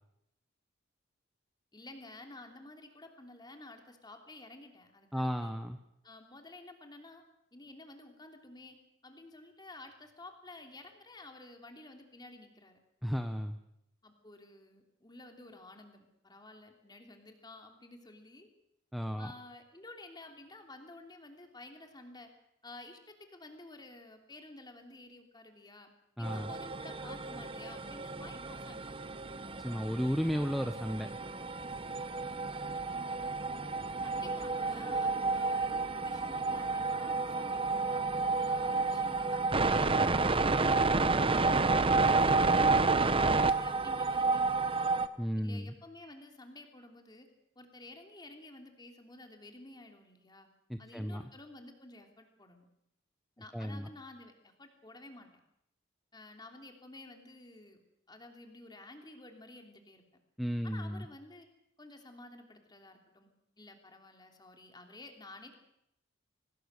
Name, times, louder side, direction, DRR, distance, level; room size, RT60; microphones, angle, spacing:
voice 1, 1.7-5.5 6.0-7.2 7.5-8.8 9.0-12.8 14.0-18.5 19.2-22.3 22.6-25.9 26.2-28.9 34.0-38.1 38.5-41.6 41.9-44.6 45.4-47.3 47.5-50.5 50.8-52.6 53.4-55.3 56.1-57.8 58.1-60.0 60.6-61.5 61.8-63.3 63.6-65.6, left 2 dB, 20° left, 4 dB, 3.2 m, -52 dB
voice 2, 5.1-5.8 13.0-13.6 18.9-19.3 26.2-26.5 29.6-31.2 45.2-45.7 50.7-51.2 53.5-53.9 60.4-61.1, equal, ahead, 7 dB, 0.9 m, -34 dB
sound 1, 26.2-45.1, right 3 dB, 25° right, 0.9 m, -30 dB
24.5 x 19.0 x 6.7 m, 0.79 s
head